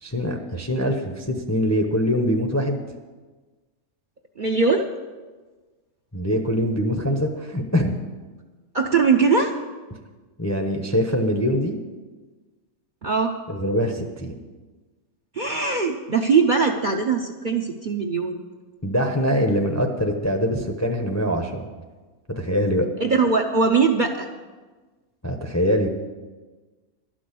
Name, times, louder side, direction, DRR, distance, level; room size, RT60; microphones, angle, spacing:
voice 1, 0.0-2.8 6.1-8.0 10.4-11.8 13.5-14.4 18.8-21.7 22.3-22.9 25.2-25.9, equal, 15° left, 4 dB, 0.6 m, -23 dB
voice 2, 4.4-4.9 8.7-9.5 13.0-13.3 15.3-18.4 23.0-24.3, right 4 dB, 45° right, 3 dB, 0.7 m, -21 dB
12.0 x 6.2 x 8.3 m, 1.3 s
omnidirectional pair, 1.5 m